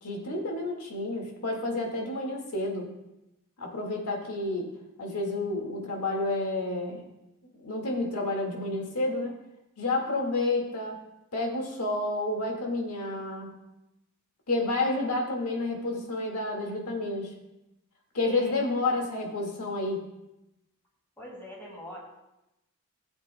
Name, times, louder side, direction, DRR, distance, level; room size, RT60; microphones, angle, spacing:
voice 1, 0.0-2.9 3.6-4.7 5.0-7.0 7.6-9.4 9.8-11.0 11.3-13.5 14.5-17.3 18.1-20.0, left 2 dB, 85° left, 0 dB, 1.9 m, -30 dB
voice 2, 18.2-18.6 21.2-22.0, left 1 dB, 10° left, -4 dB, 2.5 m, -43 dB
16.0 x 8.0 x 2.2 m, 0.92 s
head